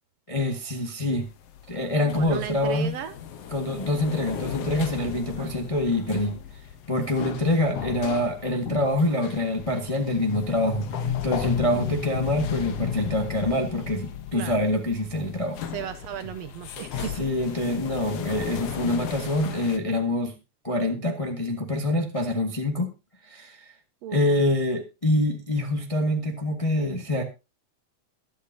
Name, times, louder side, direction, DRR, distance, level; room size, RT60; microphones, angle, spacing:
voice 1, 0.3-1.3 1.7-3.0 3.5-6.4 6.9-15.6 17.2-20.3 20.6-22.9 23.3-23.6 24.1-27.2, left 1 dB, 15° left, 3 dB, 1.1 m, -25 dB
sound 1, 1.1-19.8, left 9 dB, 65° left, 2.0 m, -35 dB
voice 2, 2.2-3.2 5.4-5.5 11.7-12.0 14.3-14.7 15.7-17.3 24.0-24.2, right 9 dB, 70° right, 11 dB, 1.7 m, -35 dB
22.0 x 8.4 x 2.8 m, 0.28 s
omnidirectional pair, 3.4 m